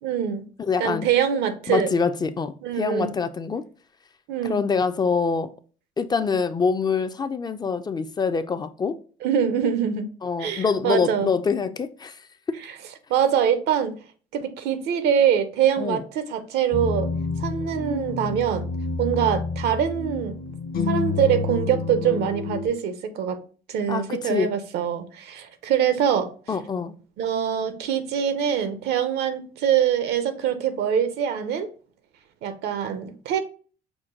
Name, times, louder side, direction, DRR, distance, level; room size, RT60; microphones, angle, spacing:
voice 1, 0.0-0.5 0.8-1.9 2.6-3.1 4.3-4.6 9.2-10.1 10.4-11.3 13.1-14.0 14.3-17.1 17.4-18.7 19.0-20.4 20.8-23.4 23.7-26.3 27.2-31.7 32.4-33.4, right 8 dB, 80° right, 0.7 m, -24 dB
voice 2, 0.6-1.1 1.7-3.6 4.4-5.5 6.0-9.0 10.2-12.3 15.8-16.0 23.9-24.5 26.5-26.9, left 5 dB, 25° left, 0.3 m, -25 dB
sound 1, 16.7-22.7, left 4 dB, 60° left, 0.8 m, -29 dB
5.9 x 2.2 x 3.8 m
cardioid pair, 110°, 17 cm